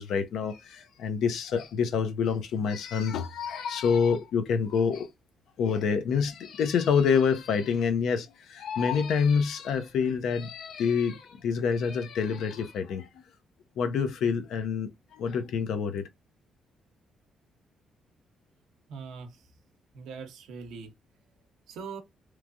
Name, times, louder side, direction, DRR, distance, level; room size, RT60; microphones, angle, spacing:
voice 1, 0.0-5.1 5.6-13.1 13.8-16.1, left 6 dB, 75° left, 0.5 m, -27 dB
voice 2, 18.9-19.4 19.9-20.9 21.7-22.0, right 5 dB, 85° right, 0.7 m, -41 dB
3.1 x 2.2 x 2.4 m
cardioid pair, 90°, 0 cm